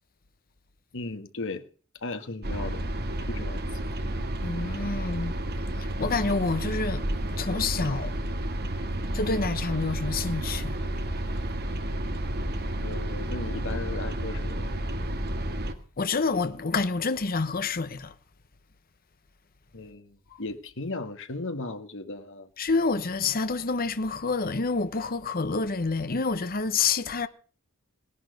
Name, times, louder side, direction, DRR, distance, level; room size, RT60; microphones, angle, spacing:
voice 1, 0.9-1.6 2.0-2.8 3.3-3.6 12.8-14.7 19.7-22.5, left 2 dB, 60° left, 1.7 m, -36 dB
sound 1, 2.4-15.7, right 1 dB, 50° right, 1.6 m, -31 dB
voice 2, 4.4-5.3 5.8-7.1 7.3-8.1 9.1-10.8 16.0-18.1 22.6-27.3, left 4 dB, 45° left, 0.9 m, -28 dB
17.5 x 11.0 x 6.5 m
head